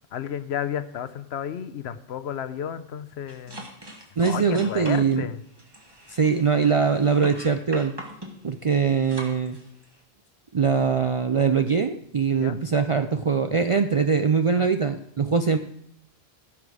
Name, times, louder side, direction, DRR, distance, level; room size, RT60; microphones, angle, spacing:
voice 1, 0.1-5.4 12.4-12.6 14.6-14.7, left 9 dB, 85° left, 11 dB, 1.0 m, -33 dB
sound 1, 3.3-10.0, right 1 dB, 25° right, 1.6 m, -41 dB
voice 2, 4.2-5.2 6.1-7.9 8.4-9.6 10.5-15.6, right 5 dB, 45° right, 8 dB, 0.4 m, -22 dB
15.5 x 6.1 x 4.8 m, 0.70 s
omnidirectional pair, 1.1 m